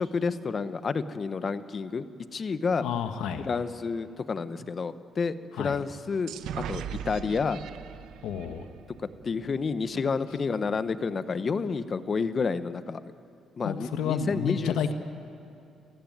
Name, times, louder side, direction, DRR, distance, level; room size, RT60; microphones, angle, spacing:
voice 1, 0.0-2.1 2.3-2.8 3.5-7.6 9.2-13.0 13.6-14.8, left 5 dB, 40° left, 13 dB, 1.0 m, -30 dB
voice 2, 2.8-3.5 5.6-5.8 8.2-8.7 13.6-14.9, left 7 dB, 90° left, 8 dB, 1.2 m, -30 dB
sound 1, 6.3-9.9, right 9 dB, 85° right, 0.9 m, -39 dB
29.0 x 15.0 x 9.3 m, 2.7 s
cardioid pair, 90°, 0 cm